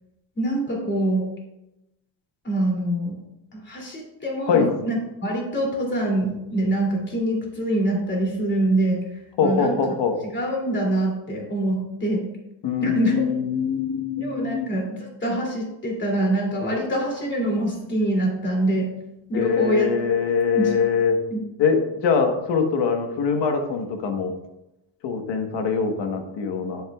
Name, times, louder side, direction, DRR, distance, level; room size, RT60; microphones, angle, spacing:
voice 1, 0.4-1.3 2.4-3.2 3.5-9.1 9.4-9.8 10.3-12.2 12.8-13.2 14.2-18.9 19.3-19.8 20.5-20.7 21.3-21.4, right 1 dB, 25° left, -1 dB, 2.9 m, -24 dB
voice 2, 9.4-10.2 12.6-14.7 19.3-21.2 21.6-24.3 25.0-26.8, left 6 dB, 70° left, 5 dB, 1.4 m, -23 dB
10.0 x 8.0 x 2.4 m, 0.91 s
cardioid pair, 115°, 44 cm